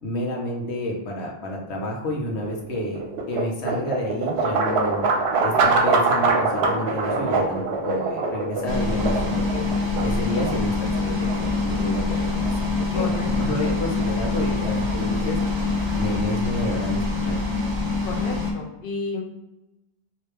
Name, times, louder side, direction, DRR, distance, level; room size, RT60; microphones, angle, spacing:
voice 1, 0.0-3.0 3.3-5.1 5.4-15.4 16.0-17.5, left 1 dB, 85° left, 0 dB, 1.1 m, -30 dB
sound 1, 2.0-16.1, right 3 dB, 80° right, 0.9 m, -26 dB
sound 2, 8.7-18.5, left 3 dB, 30° right, 0.7 m, -25 dB
voice 2, 12.9-13.3 18.0-19.2, left 3 dB, 60° left, 2 dB, 0.8 m, -31 dB
3.0 x 2.8 x 3.2 m, 0.96 s
omnidirectional pair, 1.1 m